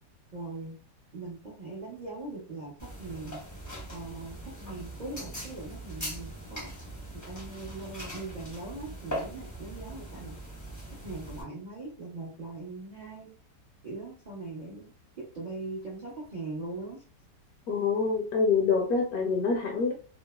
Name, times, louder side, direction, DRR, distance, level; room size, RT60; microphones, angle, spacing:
voice 1, 0.3-0.8 1.1-3.4 3.9-6.7 7.1-10.4 11.0-13.3 13.8-14.9 15.3-17.0, right 3 dB, 70° right, -6 dB, 0.4 m, -40 dB
sound 1, 2.8-11.4, right 1 dB, 25° left, 0.4 m, -41 dB
voice 2, 17.7-19.9, left 4 dB, 70° left, 1 dB, 1.0 m, -26 dB
3.0 x 2.0 x 2.2 m, 0.39 s
omnidirectional pair, 1.8 m